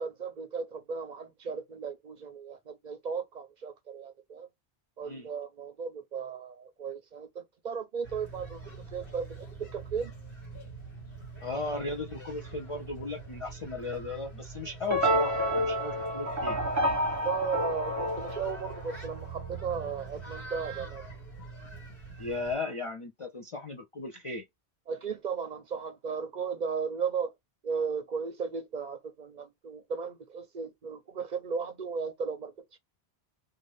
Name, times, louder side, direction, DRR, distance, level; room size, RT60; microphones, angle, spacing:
voice 1, 0.0-4.5 5.0-8.6 8.9-9.5 9.7-10.1 17.2-21.1 24.9-27.3 27.6-32.5, right 6 dB, 55° right, 0.6 m, -35 dB
sound 1, 8.0-22.6, right 4 dB, 75° left, 1.7 m, -44 dB
voice 2, 11.4-16.6 22.2-24.5, left 3 dB, 45° left, 0.4 m, -36 dB
sound 2, 14.9-19.2, equal, 20° right, 0.7 m, -29 dB
2.6 x 2.5 x 3.2 m
omnidirectional pair, 1.1 m